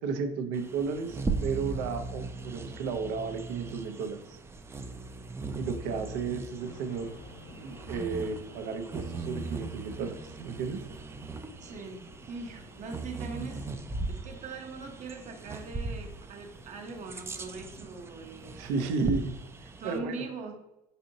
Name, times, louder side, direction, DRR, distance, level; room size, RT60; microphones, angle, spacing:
voice 1, 0.0-4.4 5.6-7.1 7.6-10.8 18.5-20.3, right 5 dB, 70° right, 6 dB, 0.6 m, -33 dB
Bird vocalization bird call bird song, 0.5-20.0, right 3 dB, 15° right, 0.3 m, -39 dB
voice 2, 5.9-6.2 11.6-18.7 19.8-20.5, right 4 dB, 45° right, 3 dB, 0.8 m, -42 dB
sound 1, 6.6-18.8, left 1 dB, 70° left, 0.9 m, -53 dB
4.2 x 2.7 x 2.6 m, 0.89 s
supercardioid pair, 90°, 17 cm